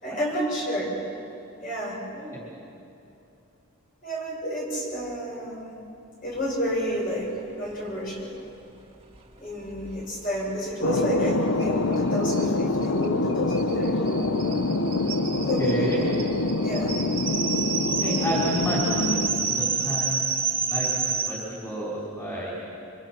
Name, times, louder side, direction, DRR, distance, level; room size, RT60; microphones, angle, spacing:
voice 1, 0.0-1.0 1.6-2.0 4.0-5.8 6.2-7.3 7.6-8.3 9.4-14.3 15.4-16.1 16.6-17.0, equal, 40° left, -3 dB, 6.7 m, -30 dB
voice 2, 2.1-2.4 15.4-16.0 17.9-20.3 20.7-22.5, right 1 dB, 15° left, -6 dB, 5.0 m, -30 dB
Thunder, 10.8-20.1, left 2 dB, 80° left, 1.0 m, -26 dB
sound 1, 11.6-11.7 11.9-12.0 12.3-21.3, right 5 dB, 25° right, 2.0 m, -29 dB
27.0 x 26.0 x 6.1 m, 2.8 s
head